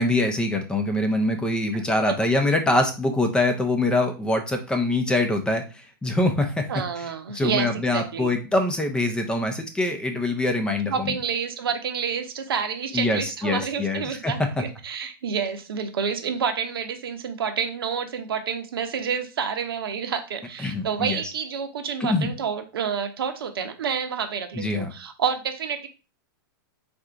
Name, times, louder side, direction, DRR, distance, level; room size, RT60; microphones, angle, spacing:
voice 1, 0.0-6.6 7.0-7.1 7.3-11.1 12.9-14.3 20.6-21.2 22.0-22.3 24.6-24.9, left 2 dB, 5° left, 5 dB, 0.6 m, -24 dB
voice 2, 1.7-2.2 6.7-8.3 10.9-25.9, right 7 dB, 90° right, 6 dB, 0.8 m, -29 dB
3.7 x 2.6 x 4.5 m, 0.32 s
hypercardioid pair, 145°, 12 cm